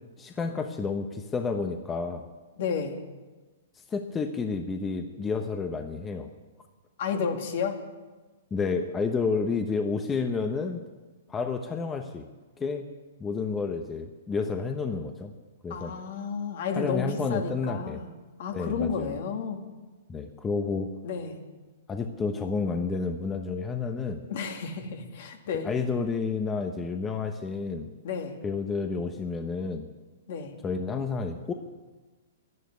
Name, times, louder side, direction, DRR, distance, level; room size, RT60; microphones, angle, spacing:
voice 1, 0.2-2.2 3.9-6.3 8.5-10.8 11.3-12.2 12.6-12.9 13.2-15.3 15.6-15.9 16.7-18.0 18.5-19.1 20.1-20.9 21.9-24.2 25.6-27.9 28.4-29.9 30.6-31.5, left 4 dB, 20° left, 6 dB, 1.0 m, -30 dB
voice 2, 2.6-3.0 7.0-7.8 15.7-18.1 18.4-19.6 21.0-21.4 24.3-25.7 28.0-28.4 30.3-30.6, left 6 dB, 60° left, 4 dB, 2.4 m, -31 dB
11.5 x 11.0 x 9.6 m, 1.3 s
hypercardioid pair, 120°, 0 cm